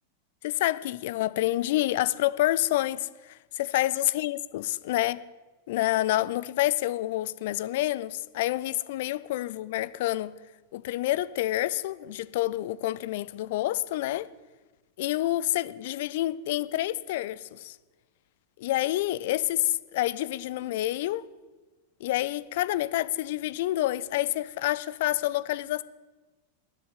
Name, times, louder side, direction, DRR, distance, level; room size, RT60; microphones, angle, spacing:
voice 1, 0.4-5.2 5.7-10.3 10.7-14.3 15.0-17.8 18.6-21.2 22.0-25.8, left 15 dB, 50° left, 0.5 m, -28 dB
12.0 x 8.3 x 9.8 m
figure-of-eight pair, 90°, 0 cm